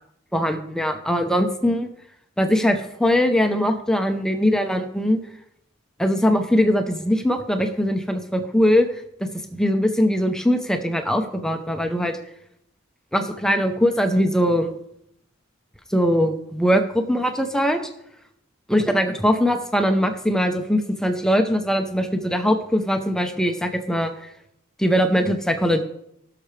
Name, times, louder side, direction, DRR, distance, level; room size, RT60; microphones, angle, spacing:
voice 1, 0.3-1.9 2.4-5.2 6.0-8.9 9.2-12.1 13.1-14.7 15.9-17.8 18.7-24.1 24.8-25.8, equal, 5° left, 5 dB, 0.8 m, -21 dB
17.0 x 6.8 x 3.3 m, 0.76 s
head